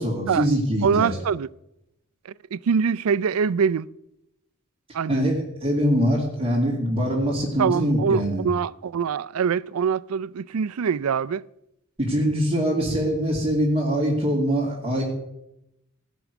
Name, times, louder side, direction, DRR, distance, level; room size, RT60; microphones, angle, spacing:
voice 1, 0.0-1.2 5.1-8.5 12.0-15.0, equal, 25° right, 2.7 m, -23 dB
voice 2, 0.8-1.5 2.5-3.9 4.9-5.4 7.6-11.4, right 6 dB, 85° right, 0.4 m, -24 dB
18.0 x 6.2 x 8.2 m
head